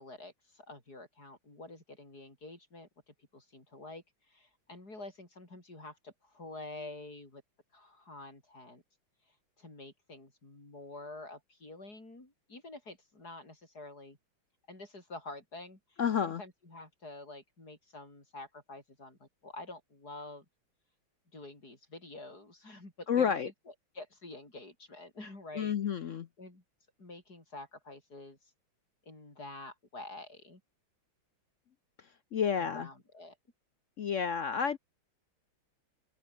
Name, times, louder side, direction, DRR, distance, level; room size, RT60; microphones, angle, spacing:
voice 1, 0.0-7.4 7.7-8.8 9.6-14.2 14.7-20.4 21.3-23.5 23.9-26.6 27.0-28.4 29.0-30.6 32.5-33.4, left 2 dB, 45° left, 7.7 m, -48 dB
voice 2, 16.0-16.4 23.1-23.5 25.5-26.3 32.3-32.9 34.0-34.8, left 7 dB, 70° left, 0.7 m, -30 dB
open air
omnidirectional pair, 2.3 m